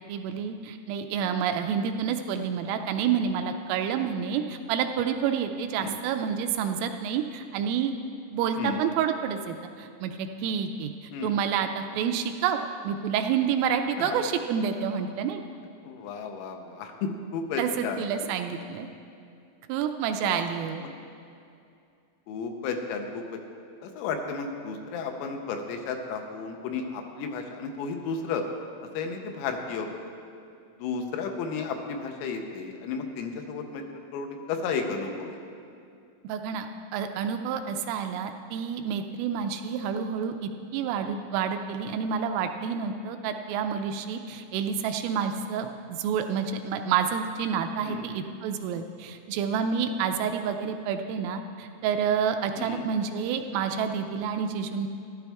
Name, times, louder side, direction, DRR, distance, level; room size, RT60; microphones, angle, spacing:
voice 1, 0.1-7.9 8.3-12.6 12.8-15.4 17.6-18.9 19.7-20.8 36.2-36.7 36.9-54.9, right 7 dB, 85° right, 6 dB, 3.0 m, -29 dB
voice 2, 15.9-18.1 20.2-20.4 20.8-20.9 22.3-23.4 23.8-28.4 29.0-30.0 30.8-35.4 47.8-48.3 52.6-52.9, left 5 dB, 85° left, 4 dB, 3.5 m, -33 dB
13.5 x 12.0 x 3.5 m, 2.5 s
omnidirectional pair, 5.9 m